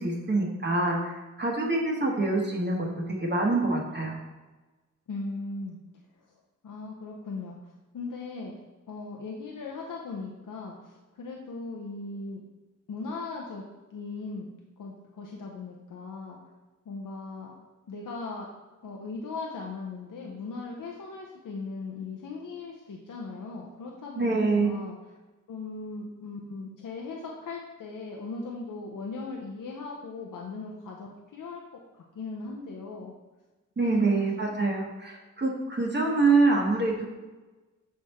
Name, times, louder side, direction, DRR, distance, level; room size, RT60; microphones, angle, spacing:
voice 1, 0.0-4.2 24.2-24.7 33.8-37.0, right 3 dB, 35° right, -2 dB, 1.0 m, -25 dB
voice 2, 5.1-5.8 6.2-6.3 6.6-8.6 8.9-12.4 12.9-13.6 13.9-16.4 16.9-17.5 17.9-18.5 18.8-25.0 25.5-33.1 33.8-34.6, left 3 dB, 90° left, -1 dB, 0.7 m, -38 dB
6.6 x 3.5 x 4.1 m, 1.2 s
wide cardioid pair, 105°, 31 cm